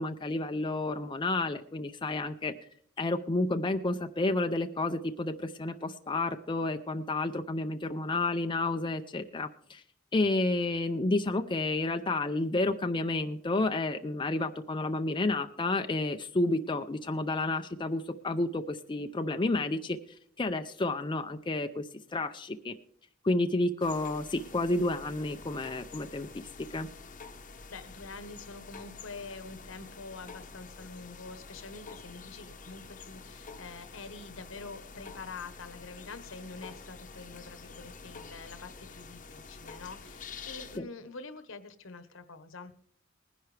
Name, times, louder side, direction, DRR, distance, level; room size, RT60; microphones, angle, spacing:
voice 1, 0.0-2.5 3.0-9.8 10.1-22.7 23.2-26.5 26.7-26.9 40.8-40.9, left 2 dB, 25° left, 6 dB, 0.5 m, -30 dB
sound 1, 23.8-40.8, left 4 dB, 40° left, 0.9 m, -48 dB
voice 2, 27.7-42.7, left 3 dB, 70° left, 11 dB, 1.1 m, -46 dB
20.0 x 10.5 x 3.3 m, 0.62 s
head